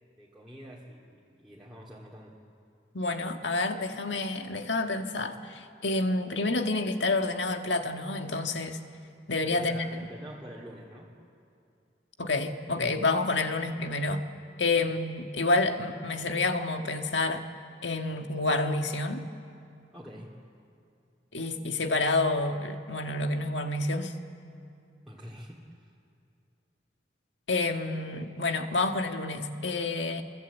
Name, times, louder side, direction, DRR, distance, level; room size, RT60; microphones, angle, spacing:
voice 1, 0.2-2.3 9.6-11.1 14.8-15.0 19.9-20.4 25.1-25.9, equal, ahead, -7 dB, 2.4 m, -46 dB
voice 2, 2.9-8.8 9.3-10.0 12.2-14.2 14.6-17.4 17.8-19.2 21.3-24.1 27.5-30.2, left 2 dB, 80° left, 5 dB, 1.6 m, -29 dB
27.0 x 24.0 x 8.2 m, 2.5 s
head